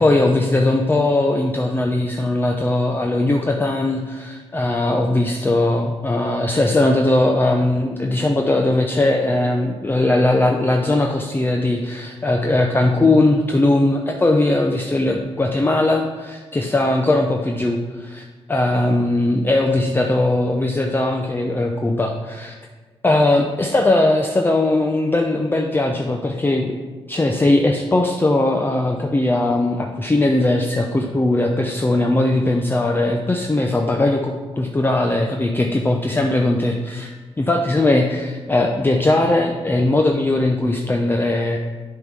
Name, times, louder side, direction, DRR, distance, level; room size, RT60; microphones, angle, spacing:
voice 1, 0.0-18.2 18.5-22.5 23.0-26.8 27.1-37.1 37.4-41.6, left 2 dB, 20° left, 2 dB, 0.6 m, -19 dB
7.6 x 3.7 x 6.2 m, 1.4 s
cardioid pair, 75°, 11 cm